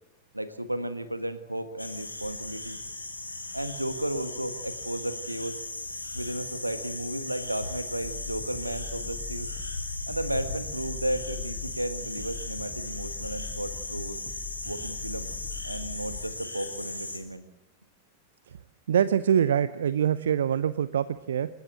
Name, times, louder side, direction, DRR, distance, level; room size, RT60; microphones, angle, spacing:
voice 1, 0.3-2.8 3.5-5.6 6.1-9.5 10.1-14.2 14.6-15.3 15.6-17.4, right 1 dB, 85° right, 11 dB, 1.6 m, -34 dB
sound 1, 1.8-17.2, left 2 dB, 85° left, 3.2 m, -37 dB
sound 2, 8.0-16.3, left 5 dB, 5° left, 4.1 m, -42 dB
voice 2, 18.9-21.5, right 9 dB, 65° right, 16 dB, 0.6 m, -24 dB
27.5 x 14.0 x 7.6 m, 1.0 s
figure-of-eight pair, 90°, 0 cm